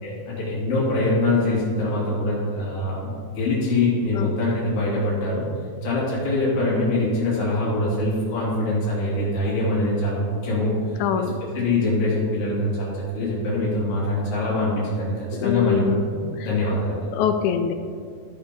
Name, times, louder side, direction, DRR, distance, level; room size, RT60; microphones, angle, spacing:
voice 1, 0.0-5.4 5.8-10.8 11.2-11.3 11.5-15.1 15.4-16.2 16.4-17.1, left 2 dB, 65° left, -7 dB, 4.0 m, -23 dB
voice 2, 11.0-11.3 15.3-16.0 17.1-17.7, left 8 dB, 80° left, 8 dB, 1.8 m, -23 dB
14.5 x 5.0 x 5.2 m, 2.2 s
omnidirectional pair, 3.7 m